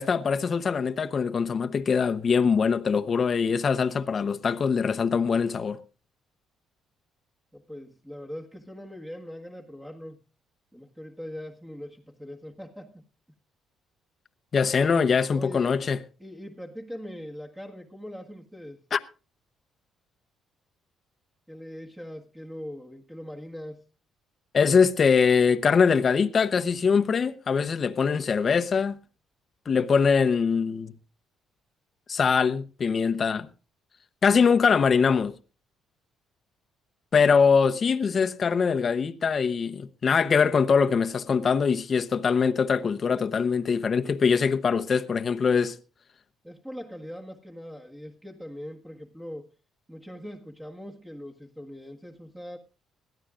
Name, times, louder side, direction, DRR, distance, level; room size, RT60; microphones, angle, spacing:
voice 1, 0.0-5.8 14.5-16.0 18.9-19.0 24.5-29.0 29.7-30.9 32.1-33.5 34.2-35.3 37.1-45.8, left 6 dB, 40° left, 0.8 m, -23 dB
voice 2, 7.5-10.2 10.7-13.0 15.3-15.7 16.2-18.8 21.5-23.8 46.4-49.5 49.9-52.6, equal, 10° right, 1.6 m, -41 dB
21.0 x 14.0 x 2.5 m
cardioid pair, 110°, 0 cm